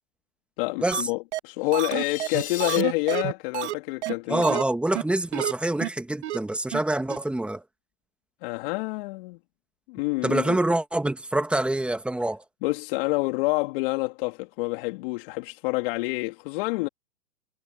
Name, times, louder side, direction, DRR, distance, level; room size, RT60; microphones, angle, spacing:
voice 1, 0.6-4.4 8.4-9.4 9.9-10.6 12.6-16.9, left 24 dB, 35° left, 2.9 m, -28 dB
sound 1, 0.9-1.0 1.3-1.4 1.7-3.7 4.0-4.1 4.4-4.6 4.9-5.0 5.3-5.5 5.8-5.9 6.2-6.4 6.7-6.8 7.1-7.2, right 15 dB, 45° right, 1.7 m, -29 dB
sound 2, 1.6-2.8, left 10 dB, 20° left, 3.6 m, -36 dB
voice 2, 4.3-7.6 10.2-12.4, right 1 dB, ahead, 1.5 m, -26 dB
hypercardioid pair, 135°, 46 cm